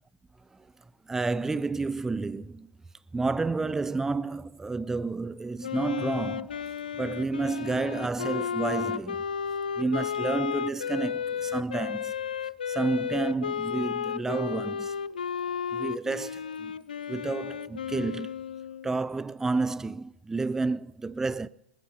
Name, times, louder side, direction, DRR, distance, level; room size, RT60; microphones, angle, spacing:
voice 1, 1.1-2.7 3.1-9.2 9.8-12.1 12.7-14.9 15.7-16.7 17.1-18.3 18.8-21.5, right 3 dB, 10° right, 0.4 m, -30 dB
Wind instrument woodwind instrument, 5.6-19.0, left 8 dB, 85° left, 0.3 m, -33 dB
21.0 x 13.5 x 2.8 m
hypercardioid pair, 100°, 5 cm